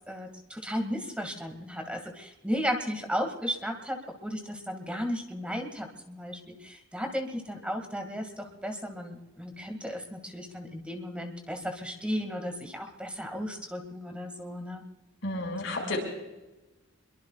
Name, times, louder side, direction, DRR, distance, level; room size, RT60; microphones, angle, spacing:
voice 1, 0.1-14.8 15.7-15.9, equal, 5° right, 4 dB, 2.0 m, -35 dB
voice 2, 15.2-16.0, left 2 dB, 65° left, 0 dB, 5.7 m, -31 dB
24.5 x 23.0 x 2.4 m, 1.0 s
head